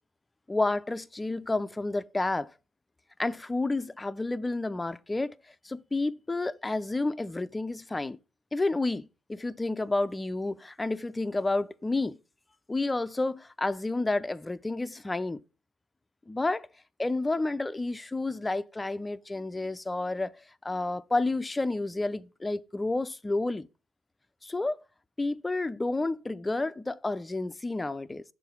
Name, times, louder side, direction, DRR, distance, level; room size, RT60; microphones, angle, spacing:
voice 1, 0.5-2.5 3.2-5.3 5.6-8.2 8.5-12.2 12.7-15.4 16.3-16.7 17.0-20.3 20.6-23.7 24.4-24.8 25.2-28.2, left 2 dB, 15° left, 0.5 m, -30 dB
7.2 x 3.8 x 5.8 m
cardioid pair, 95°, 0 cm